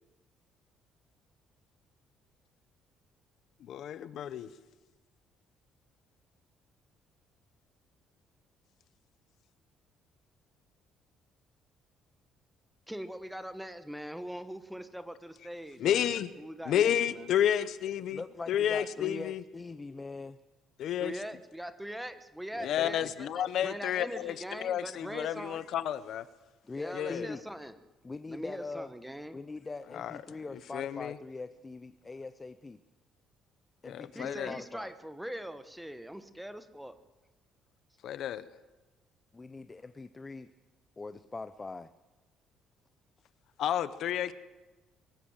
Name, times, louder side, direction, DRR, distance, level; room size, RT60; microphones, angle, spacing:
voice 1, 3.6-4.5 15.8-16.3 16.7-18.2 18.5-19.4 20.8-21.1 22.6-26.2 26.9-27.3 29.9-31.2 33.8-34.6 38.0-38.4 43.6-44.3, left 10 dB, 65° left, 15 dB, 0.9 m, -31 dB
voice 2, 12.9-16.1 16.4-17.3 21.0-25.6 26.7-27.7 28.3-29.4 34.1-36.9, equal, 5° right, 11 dB, 1.2 m, -42 dB
voice 3, 18.1-20.4 22.5-23.1 26.7-27.4 28.0-28.9 29.3-32.8 33.8-34.9 39.3-40.5 41.0-41.9, left 3 dB, 20° left, 12 dB, 0.6 m, -42 dB
23.0 x 15.5 x 7.3 m, 1.1 s
cardioid pair, 140°, 0 cm